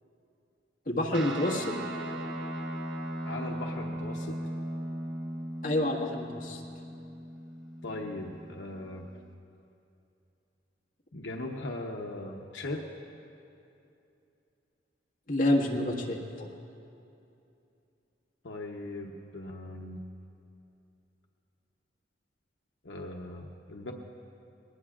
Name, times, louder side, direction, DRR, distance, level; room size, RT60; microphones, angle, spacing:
voice 1, 0.9-1.8 5.6-6.6 15.3-16.5, left 1 dB, 45° left, -3 dB, 1.6 m, -28 dB
Guitar, 1.1-8.8, right 1 dB, 75° right, 1.4 m, -38 dB
voice 2, 3.2-4.4 7.8-9.1 11.1-12.9 18.4-20.0 22.8-23.9, left 2 dB, 80° left, 1 dB, 0.9 m, -39 dB
21.0 x 19.5 x 2.5 m, 2.7 s
head